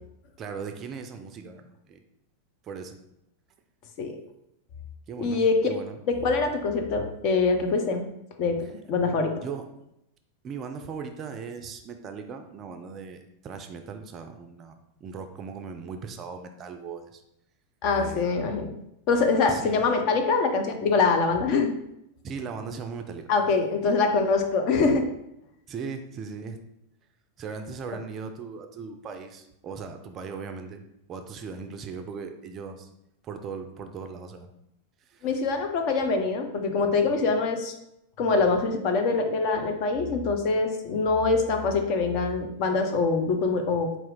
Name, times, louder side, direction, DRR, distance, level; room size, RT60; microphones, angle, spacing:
voice 1, 0.4-2.0 2.6-3.0 5.1-6.0 9.4-9.7 10.4-17.2 18.0-18.3 19.5-19.8 22.2-23.3 23.8-23.9 25.7-26.6 27.4-30.8 31.1-32.9 33.2-34.5 35.0-35.3, right 5 dB, 30° right, 6 dB, 0.4 m, -38 dB
voice 2, 5.2-5.6 6.1-8.0 8.4-9.4 17.8-18.7 19.1-21.7 23.3-25.1 35.2-37.7 38.2-44.0, left 4 dB, 40° left, 5 dB, 0.6 m, -24 dB
4.3 x 2.4 x 3.7 m, 0.81 s
figure-of-eight pair, 90°, 0 cm